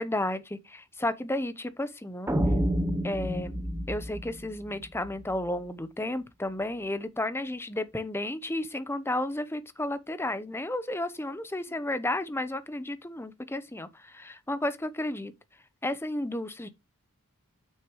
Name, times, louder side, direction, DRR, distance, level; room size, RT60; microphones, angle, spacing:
voice 1, 0.0-2.3 3.0-15.3 15.8-16.7, left 1 dB, 10° left, 0.8 m, -32 dB
sound 1, 2.3-5.4, equal, 10° right, 0.9 m, -29 dB
9.0 x 6.4 x 3.2 m
head